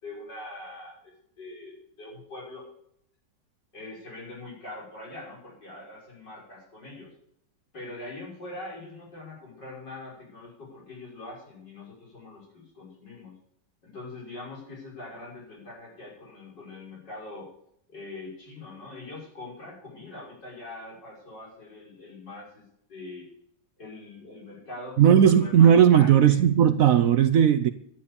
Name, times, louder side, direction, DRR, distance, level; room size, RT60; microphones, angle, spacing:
voice 1, 0.0-2.6 3.7-7.1 7.7-13.3 13.8-17.5 17.9-22.6 22.9-23.3 23.8-26.4, left 2 dB, 75° left, 6.6 m, -43 dB
voice 2, 25.0-27.7, right 9 dB, 65° right, 0.9 m, -17 dB
12.0 x 10.5 x 7.0 m
omnidirectional pair, 1.9 m